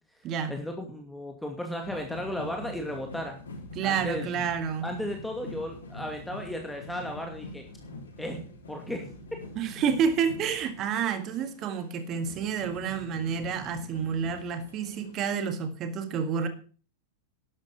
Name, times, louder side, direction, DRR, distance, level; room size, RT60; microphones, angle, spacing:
voice 1, 0.5-3.4 3.8-4.3 4.8-7.6 8.2-8.4 8.7-9.1, left 1 dB, 5° left, 2 dB, 2.4 m, -35 dB
sound 1, 1.8-15.3, left 1 dB, 70° left, 5.1 m, -44 dB
voice 2, 3.8-4.9 9.6-16.5, right 7 dB, 35° right, 9 dB, 1.8 m, -29 dB
12.0 x 12.0 x 5.3 m, 0.40 s
figure-of-eight pair, 90°, 0 cm